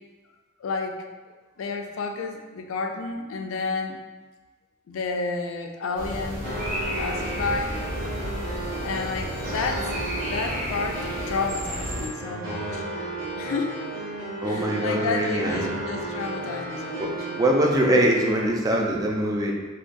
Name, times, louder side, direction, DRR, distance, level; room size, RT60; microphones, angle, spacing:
voice 1, 0.6-1.0 1.6-4.0 4.9-6.5 7.0-7.8 8.8-9.9 10.2-12.9 13.4-13.8 14.4-17.3, left 4 dB, 90° left, 4 dB, 0.4 m, -31 dB
sound 1, 6.0-12.1, equal, 45° right, 0.7 m, -32 dB
sound 2, 6.4-18.4, right 1 dB, 60° right, 1.2 m, -34 dB
voice 2, 14.4-15.7 17.0-19.5, right 1 dB, 20° right, -1 dB, 0.3 m, -23 dB
3.6 x 2.2 x 2.5 m, 1.3 s
head